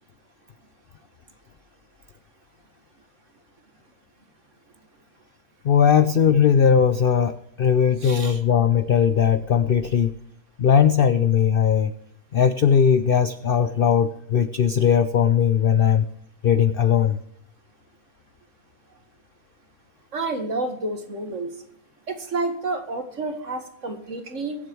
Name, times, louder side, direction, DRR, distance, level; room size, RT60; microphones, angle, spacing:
voice 1, 5.6-10.1 10.6-11.9 12.3-16.1 16.4-17.2, left 7 dB, 75° left, 12 dB, 0.5 m, -19 dB
voice 2, 8.0-8.4 20.1-21.5 22.1-24.6, right 2 dB, 50° right, 7 dB, 2.0 m, -29 dB
22.5 x 8.0 x 4.6 m, 0.74 s
omnidirectional pair, 1.7 m